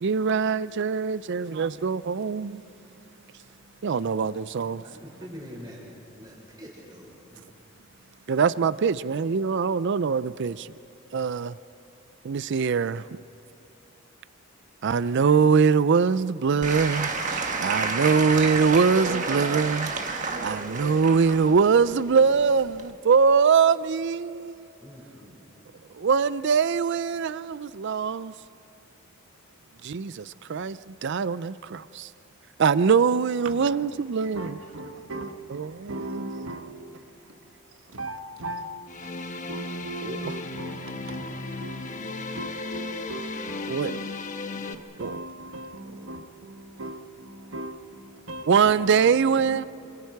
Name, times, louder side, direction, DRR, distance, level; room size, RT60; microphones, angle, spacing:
voice 1, 0.0-2.6 3.8-4.8 8.3-10.7 11.1-11.6 12.2-13.0 14.8-24.7 26.0-28.3 29.8-32.1 32.6-34.6 35.5-36.2 40.0-40.2 43.7-44.0 45.0-45.2 48.5-49.6, right 5 dB, 55° right, 0.4 m, -23 dB
voice 2, 4.8-7.4 24.8-25.4, equal, 20° right, 5.9 m, -44 dB
Applause / Crowd, 16.6-22.9, right 4 dB, 35° right, 1.5 m, -30 dB
voice 3, 33.4-37.5 37.9-39.2 39.5-49.7, right 1 dB, 70° right, 1.5 m, -39 dB
sound 1, 38.9-44.7, left 3 dB, 35° left, 1.1 m, -35 dB
27.0 x 26.5 x 4.7 m
head